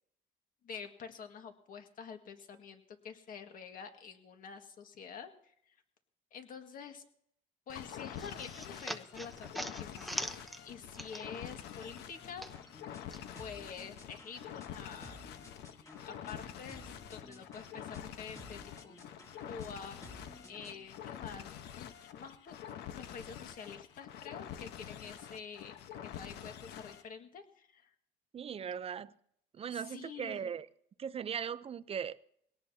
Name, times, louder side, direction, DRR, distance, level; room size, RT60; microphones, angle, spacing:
voice 1, 0.6-5.7 6.3-7.0 7.7-12.5 13.4-15.2 16.0-18.9 19.5-22.6 22.9-25.7 26.0-27.9 29.7-30.5, left 6 dB, 55° left, 1.9 m, -48 dB
sound 1, 7.7-27.1, left 10 dB, 80° left, 1.2 m, -47 dB
sound 2, 7.9-11.5 11.8-13.2, equal, ahead, 0.9 m, -43 dB
sound 3, 12.5-20.9, left 1 dB, 20° left, 2.1 m, -55 dB
voice 2, 28.3-29.1 29.5-30.7 31.0-32.2, right 7 dB, 35° right, 0.6 m, -38 dB
21.5 x 18.0 x 2.8 m
cardioid pair, 110°, 17 cm